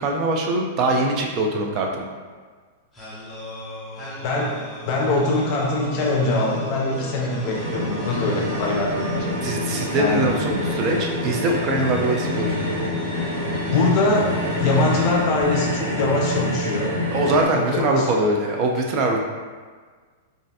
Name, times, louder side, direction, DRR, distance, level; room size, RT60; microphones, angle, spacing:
voice 1, 0.0-2.1 9.4-12.6 17.1-19.2, right 2 dB, 35° right, 1 dB, 0.4 m, -22 dB
sound 1, 2.9-15.9, left 1 dB, 10° left, 0.7 m, -34 dB
voice 2, 4.2-9.3 9.9-10.3 10.6-10.7 13.6-17.0 17.5-18.2, left 2 dB, 45° left, -1 dB, 0.6 m, -23 dB
sound 2, 7.5-17.5, left 1 dB, 90° right, 0.8 m, -27 dB
3.1 x 2.4 x 2.7 m, 1.5 s
supercardioid pair, 145°, 0 cm